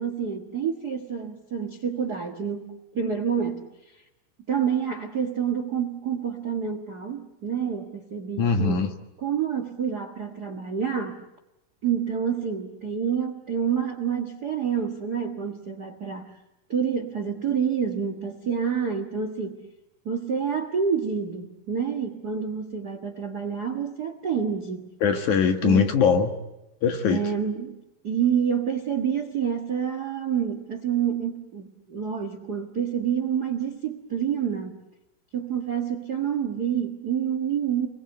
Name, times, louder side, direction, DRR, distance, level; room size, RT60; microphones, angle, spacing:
voice 1, 0.0-3.6 4.5-8.8 9.2-11.2 11.8-16.3 16.7-19.6 20.0-24.9 25.6-25.9 27.1-27.8 28.0-34.8 35.3-37.9, right 7 dB, 60° right, 1.0 m, -28 dB
voice 2, 8.4-8.9 25.0-26.3 26.8-27.2, left 6 dB, 60° left, 2.8 m, -21 dB
28.5 x 22.0 x 8.0 m
omnidirectional pair, 4.4 m